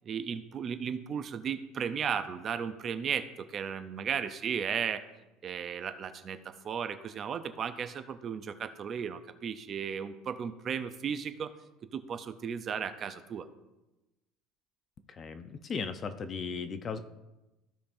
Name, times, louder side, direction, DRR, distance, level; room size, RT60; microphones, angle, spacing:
voice 1, 0.0-5.0 5.4-11.5 11.9-13.5, right 7 dB, 35° right, 11 dB, 0.5 m, -35 dB
voice 2, 15.1-17.0, left 5 dB, 30° left, 10 dB, 0.6 m, -37 dB
15.0 x 5.1 x 2.6 m, 1.0 s
cardioid pair, 135°, 0 cm